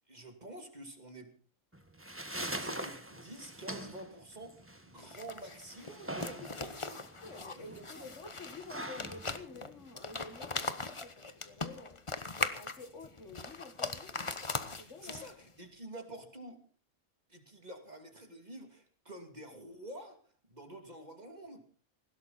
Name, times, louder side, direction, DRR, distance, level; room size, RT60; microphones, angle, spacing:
voice 1, 0.1-1.3 2.3-7.0 7.5-8.1 14.8-16.6 17.3-20.2 20.5-21.6, right 1 dB, 35° right, 2.7 m, -49 dB
sound 1, 1.7-10.7, right 1 dB, 10° right, 1.5 m, -44 dB
sound 2, 5.0-15.5, left 3 dB, 25° left, 1.0 m, -40 dB
voice 2, 7.2-12.0 12.5-14.4 14.8-15.3, left 3 dB, 65° left, 2.1 m, -50 dB
19.5 x 16.5 x 4.2 m
omnidirectional pair, 1.3 m